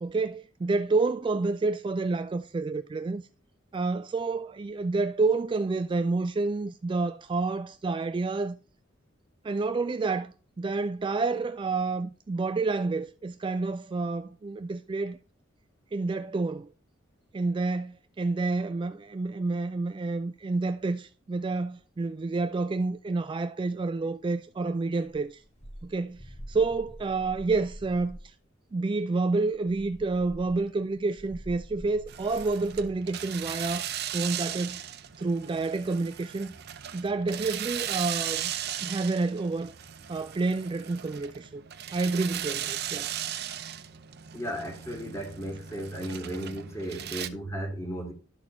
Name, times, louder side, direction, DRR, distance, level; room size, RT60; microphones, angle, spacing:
voice 1, 0.0-3.2 3.7-8.6 9.4-15.2 15.9-16.7 17.3-25.4 25.8-28.3 28.7-34.8 35.2-36.5 36.9-38.5 38.8-39.7 40.1-41.6 41.9-43.1, right 3 dB, 25° right, 0.3 m, -29 dB
sound 1, 25.1-28.3 29.5-33.0, equal, 35° left, 1.4 m, -46 dB
sound 2, 32.1-47.3, right 10 dB, 55° right, 0.6 m, -37 dB
voice 2, 44.3-48.1, equal, 15° left, 2.1 m, -35 dB
12.0 x 4.2 x 4.4 m
head